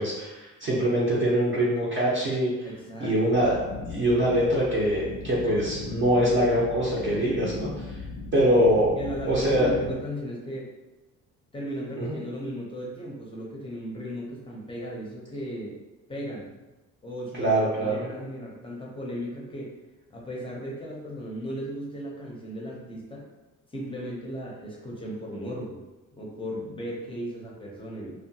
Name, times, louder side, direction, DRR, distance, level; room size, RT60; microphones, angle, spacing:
voice 1, 0.0-2.7 3.0-3.5 3.9-8.0 8.3-8.9 9.3-9.7 12.0-12.2 17.4-18.0, equal, 35° right, -7 dB, 0.6 m, -23 dB
voice 2, 2.6-3.4 9.0-10.7 11.5-15.8 16.1-16.5 17.0-19.7 20.1-23.2 23.7-25.8 26.2-28.1, equal, 15° left, -3 dB, 0.6 m, -36 dB
sound 1, 3.3-9.9, left 4 dB, 65° left, 0.5 m, -38 dB
2.7 x 2.2 x 2.7 m, 1.1 s
cardioid pair, 140°, 33 cm